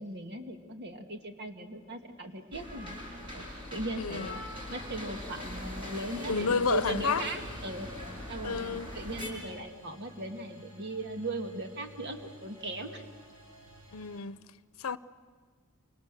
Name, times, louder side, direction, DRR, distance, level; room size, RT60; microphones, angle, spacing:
voice 1, 0.0-3.0 3.3-7.9 8.3-13.0, right 2 dB, 55° right, 2.2 m, -38 dB
sound 1, 1.9-14.2, right 2 dB, 80° right, 5.1 m, -54 dB
sound 2, 2.5-9.3, left 1 dB, 25° right, 7.5 m, -41 dB
voice 2, 4.0-4.4 6.3-7.2 8.4-8.9 13.9-14.4 14.8-15.0, left 5 dB, 80° left, 0.8 m, -30 dB
28.5 x 25.5 x 7.7 m
head